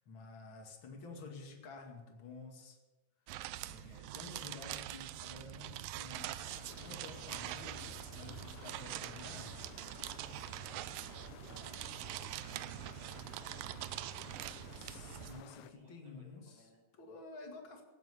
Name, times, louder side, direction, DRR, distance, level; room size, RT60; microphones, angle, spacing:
voice 1, 0.0-2.8 3.6-6.5 6.8-9.8 14.8-16.7 17.0-17.8, left 4 dB, 35° left, 2 dB, 2.5 m, -51 dB
sound 1, 3.3-15.4, right 14 dB, 85° right, 1.9 m, -44 dB
sound 2, 6.4-15.7, left 12 dB, 85° left, 2.7 m, -55 dB
voice 2, 11.0-15.3 15.5-16.8, right 2 dB, 50° right, -1 dB, 3.9 m, -64 dB
17.5 x 7.6 x 9.8 m, 1.2 s
omnidirectional pair, 4.6 m